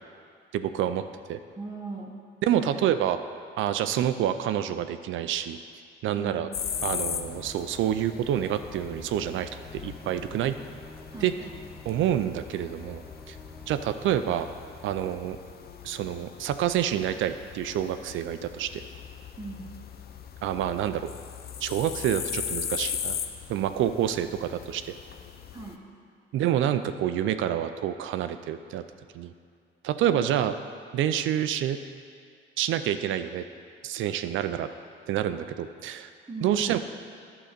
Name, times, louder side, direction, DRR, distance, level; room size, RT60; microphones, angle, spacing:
voice 1, 0.5-1.0 1.3-1.4 2.4-3.2 3.6-5.6 6.0-6.5 6.8-10.6 11.2-11.3 11.9-13.0 13.3-13.4 13.7-14.5 14.8-15.4 15.8-18.8 20.4-21.0 21.6-23.2 23.5-24.9 26.3-28.8 29.1-29.3 29.8-30.6 30.9-31.8 32.6-33.4 33.8-34.7 35.1-36.1 36.4-36.8, right 10 dB, 75° right, 10 dB, 0.4 m, -27 dB
voice 2, 1.6-2.2 2.5-2.8 6.2-6.5 11.1-11.6 19.4-19.7 25.5-25.8 36.3-36.7, right 3 dB, 15° right, -2 dB, 0.8 m, -38 dB
sound 1, 6.5-25.8, left 8 dB, 50° left, 0.5 m, -39 dB
sound 2, 6.6-15.2, left 1 dB, ahead, 0.5 m, -49 dB
10.0 x 3.9 x 6.6 m, 2.3 s
cardioid pair, 90°, 20 cm